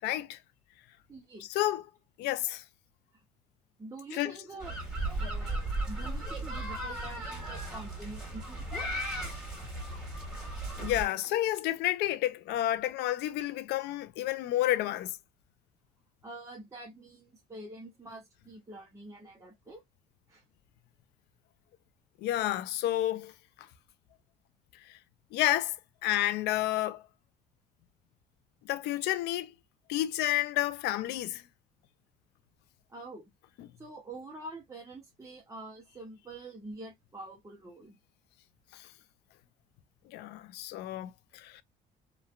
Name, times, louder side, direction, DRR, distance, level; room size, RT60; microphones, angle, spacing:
voice 1, 0.0-0.4 1.5-1.8 2.2-2.6 4.1-4.3 10.8-15.1 22.2-23.3 25.3-25.8 26.0-27.0 28.7-29.5 29.9-31.4 38.7-38.9 40.1-41.6, left 14 dB, 80° left, 0.4 m, -30 dB
voice 2, 1.1-1.5 3.1-3.2 3.8-8.9 16.2-19.8 20.3-20.4 32.9-33.3 33.8-37.9, right 2 dB, 20° right, 0.6 m, -46 dB
sound 1, 4.6-11.1, right 1 dB, ahead, 1.6 m, -36 dB
2.9 x 2.2 x 2.2 m
cardioid pair, 110°, 17 cm